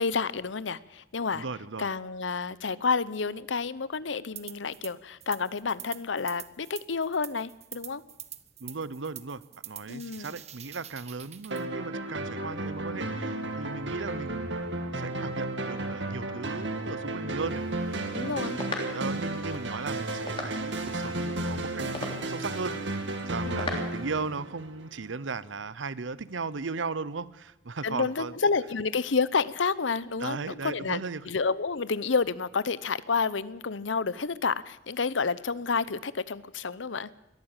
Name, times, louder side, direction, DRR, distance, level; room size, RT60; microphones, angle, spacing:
voice 1, 0.0-1.4 1.8-8.0 9.9-10.3 18.1-18.6 23.4-23.7 27.8-37.1, left 5 dB, 85° left, 18 dB, 0.8 m, -30 dB
voice 2, 1.3-1.9 8.6-21.9 22.2-28.3 30.2-31.3, right 4 dB, 90° right, 18 dB, 0.8 m, -37 dB
sound 1, 4.4-4.9 5.2-11.6, right 12 dB, 35° right, 1.0 m, -45 dB
sound 2, 11.5-25.0, right 2 dB, 70° right, 2.3 m, -33 dB
sound 3, 17.4-24.3, left 2 dB, 30° left, 3.3 m, -42 dB
22.0 x 14.0 x 9.0 m, 0.89 s
head